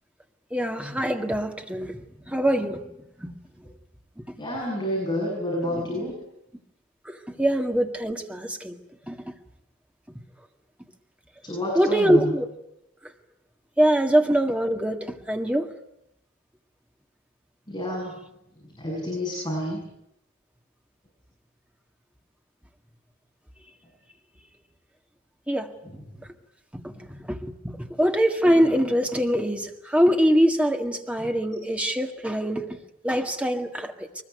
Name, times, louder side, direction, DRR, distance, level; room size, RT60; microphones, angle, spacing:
voice 1, 0.5-2.0 2.3-2.8 3.2-3.3 7.1-8.8 9.1-9.2 11.8-12.5 13.8-15.7 25.5-25.7 27.3-27.4 27.6-27.7 28.0-32.7 33.0-34.1, equal, 5° right, 3 dB, 1.9 m, -23 dB
voice 2, 4.4-6.2 11.4-12.4 17.7-18.2 18.8-19.8, left 1 dB, 20° left, -2 dB, 7.7 m, -29 dB
23.0 x 21.0 x 9.4 m, 0.80 s
head